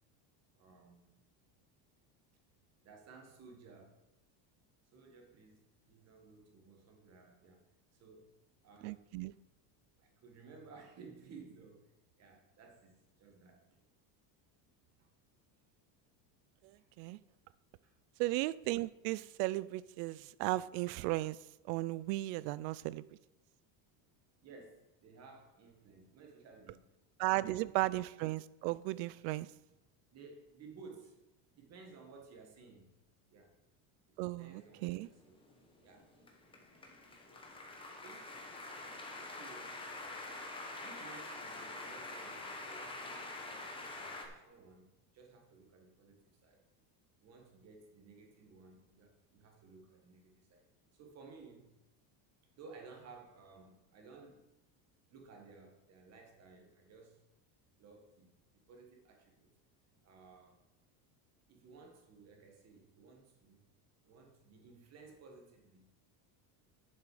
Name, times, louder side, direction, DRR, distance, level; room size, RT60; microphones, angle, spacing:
voice 1, 0.6-1.2 2.8-4.0 4.9-9.1 10.0-13.8 15.0-15.1 16.8-16.9 17.8-18.0 24.4-26.9 27.3-27.8 30.1-31.3 31.5-33.0 33.3-33.5 34.4-35.4 35.8-36.4 38.0-38.5 39.1-40.3 40.8-46.6 47.2-51.8 52.5-54.5 55.1-57.3 57.8-59.6 60.0-60.6 61.5-63.7 64.0-65.9, right 4 dB, 30° right, 1.7 m, -57 dB
voice 2, 8.8-9.3 17.0-17.2 18.2-21.4 21.7-23.0 27.2-29.5 34.2-35.1, right 18 dB, 75° right, 0.6 m, -35 dB
sound 1, 35.0-44.3, left 2 dB, 10° left, 0.9 m, -46 dB
9.8 x 7.4 x 4.9 m
cardioid pair, 175°, 49 cm